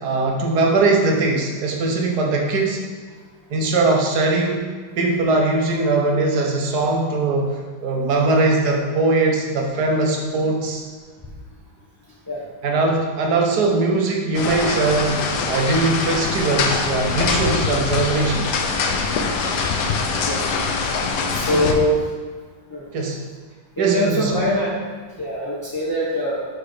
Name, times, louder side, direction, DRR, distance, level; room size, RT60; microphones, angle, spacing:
voice 1, 0.0-2.8 3.5-4.7 5.0-10.9 12.6-18.6 20.1-20.2 21.5-21.8 22.9-23.2 23.8-24.3, right 3 dB, 60° right, 1 dB, 1.4 m, -20 dB
sound 1, 14.3-21.7, left 4 dB, 70° left, 1.2 m, -23 dB
voice 2, 21.3-22.0 22.7-22.9 23.8-24.8 25.2-26.5, left 1 dB, 20° left, -8 dB, 0.6 m, -22 dB
6.2 x 4.9 x 4.9 m, 1.5 s
omnidirectional pair, 2.1 m